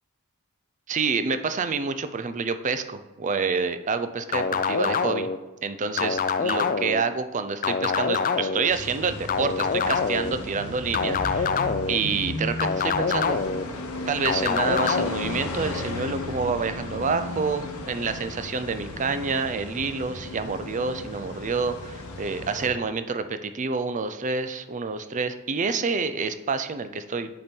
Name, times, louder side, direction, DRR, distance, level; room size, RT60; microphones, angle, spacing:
voice 1, 0.9-5.3 5.6-11.6 11.9-13.4 14.1-27.3, right 4 dB, 35° right, 10 dB, 0.5 m, -28 dB
sound 1, 4.3-5.4 6.0-7.0 7.6-8.7 9.3-10.3 10.9-12.0 12.6-13.6 14.2-15.1, left 5 dB, 40° left, 0.4 m, -25 dB
sound 2, 8.7-22.7, left 2 dB, 80° left, 1.0 m, -35 dB
8.2 x 4.5 x 5.3 m, 1.2 s
head